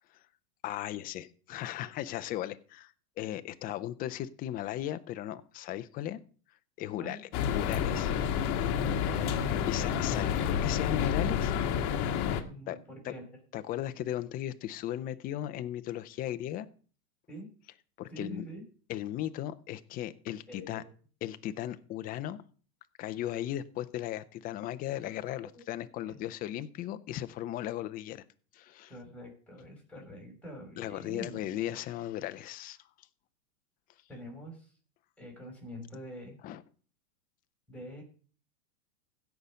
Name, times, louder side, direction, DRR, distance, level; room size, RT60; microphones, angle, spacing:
voice 1, 0.6-6.2 6.8-8.1 9.7-11.5 12.7-12.8 13.0-13.1 13.5-16.7 18.0-18.4 18.9-20.8 21.2-22.4 23.0-28.2 28.5-28.9 30.8-32.8 36.4-36.6, left 12 dB, 20° left, 12 dB, 0.5 m, -37 dB
sound 1, 7.3-12.4, left 8 dB, 40° left, 1.4 m, -29 dB
voice 2, 8.7-10.2 12.4-13.2 17.3-17.5 18.1-18.6 20.5-20.9 25.6-25.7 26.1-26.2 28.9-31.4 34.1-34.7 35.2-36.4 37.7-38.0, equal, 5° left, 1 dB, 5.7 m, -45 dB
16.0 x 5.8 x 5.2 m, 0.41 s
hypercardioid pair, 125°, 46 cm